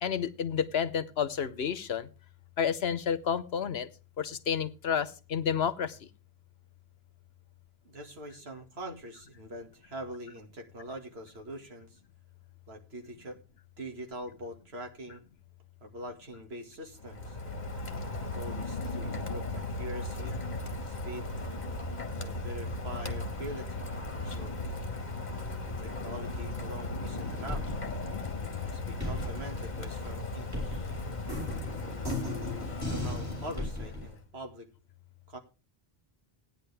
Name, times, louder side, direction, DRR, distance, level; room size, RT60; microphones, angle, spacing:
voice 1, 0.0-2.1 2.6-3.9 4.2-6.0, left 7 dB, 80° left, 13 dB, 1.2 m, -30 dB
voice 2, 7.8-12.0 12.7-13.4 13.8-15.2 15.8-17.4 18.3-20.4 20.8-21.3 22.2-24.5 25.6-27.7 28.6-31.0 31.8-34.7 35.3-35.4, right 1 dB, 85° right, 4 dB, 2.3 m, -44 dB
Rain, 16.9-34.2, left 2 dB, 45° left, 1.5 m, -37 dB
sound 1, 27.2-28.6 29.0-34.1, left 1 dB, 15° right, 5.4 m, -37 dB
15.5 x 9.8 x 3.4 m, 0.31 s
omnidirectional pair, 1.0 m